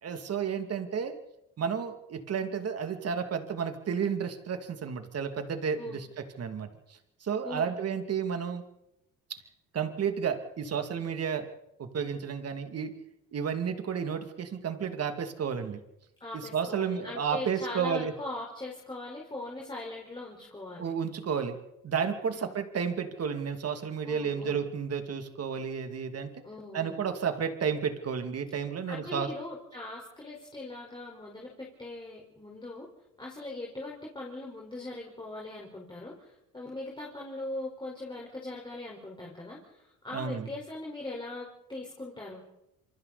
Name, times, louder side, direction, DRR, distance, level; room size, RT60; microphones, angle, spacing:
voice 1, 0.0-1.2 1.6-6.7 7.2-8.6 9.3-9.4 9.7-11.5 11.8-12.9 13.3-15.8 16.3-18.1 20.8-21.6 21.8-26.3 26.7-29.3 40.1-40.5, right 7 dB, 50° right, 7 dB, 2.7 m, -32 dB
voice 2, 7.4-7.7 16.2-20.9 22.3-22.5 24.0-24.6 26.4-27.0 28.9-32.9 33.2-36.3 36.5-42.4, left 2 dB, 15° left, -3 dB, 4.7 m, -40 dB
27.5 x 24.0 x 4.2 m, 0.86 s
cardioid pair, 95°, 32 cm